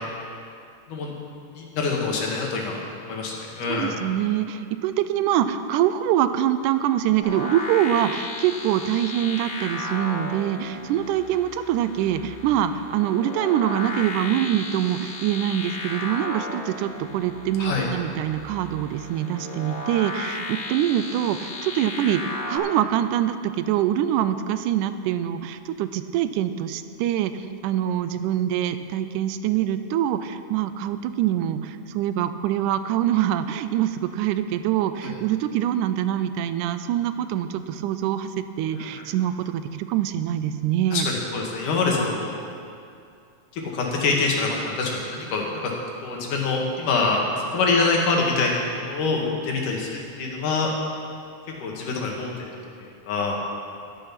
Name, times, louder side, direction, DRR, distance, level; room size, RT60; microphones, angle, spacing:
voice 1, 1.6-3.9 17.6-17.9 35.0-35.1 38.7-39.0 40.9-42.4 43.5-45.7 46.0-50.7 51.6-52.3 52.8-53.4, left 3 dB, 85° left, -1 dB, 3.3 m, -25 dB
voice 2, 3.7-41.1, right 11 dB, 85° right, 11 dB, 2.1 m, -24 dB
sound 1, 7.2-22.6, left 2 dB, 65° left, 4.0 m, -35 dB
12.0 x 11.0 x 5.8 m, 2.4 s
omnidirectional pair, 3.6 m